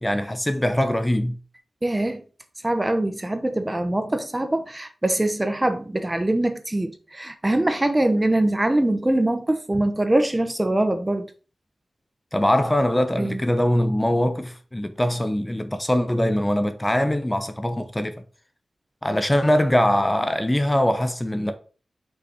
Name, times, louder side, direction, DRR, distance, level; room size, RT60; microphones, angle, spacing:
voice 1, 0.0-1.4 12.3-18.2 19.0-21.5, left 1 dB, 15° left, 0.9 m, -22 dB
voice 2, 1.8-2.2 2.6-11.3 13.2-13.4, right 1 dB, 25° right, 0.8 m, -23 dB
5.6 x 4.0 x 4.4 m
cardioid pair, 45°, 0 cm